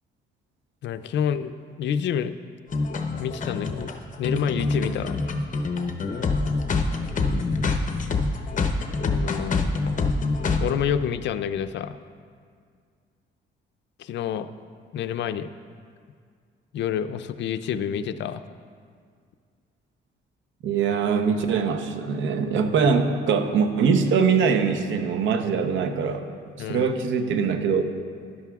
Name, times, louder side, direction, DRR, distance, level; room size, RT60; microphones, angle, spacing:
voice 1, 0.8-1.5 1.8-2.4 3.2-5.2 9.0-9.6 10.6-12.0 14.0-14.5 14.9-15.5 16.7-18.4 26.6-26.9, left 8 dB, 65° left, 10 dB, 0.4 m, -28 dB
sound 1, 2.7-10.7, left 3 dB, 40° left, 0.8 m, -25 dB
voice 2, 20.6-26.3 26.7-27.8, right 5 dB, 75° right, 7 dB, 0.8 m, -22 dB
12.5 x 11.0 x 2.4 m, 2.1 s
cardioid pair, 90°, 20 cm